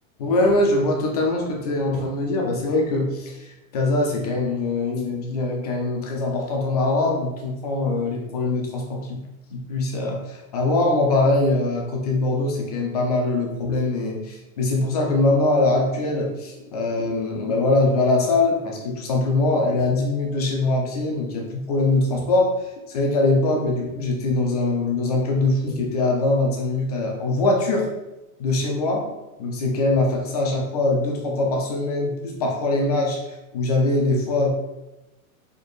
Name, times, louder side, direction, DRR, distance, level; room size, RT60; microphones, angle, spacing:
voice 1, 0.2-9.2 9.5-27.9 28.4-29.0 29.4-34.6, left 2 dB, 30° left, 0 dB, 0.5 m, -22 dB
4.3 x 2.9 x 3.1 m, 1.0 s
supercardioid pair, 175°, 43 cm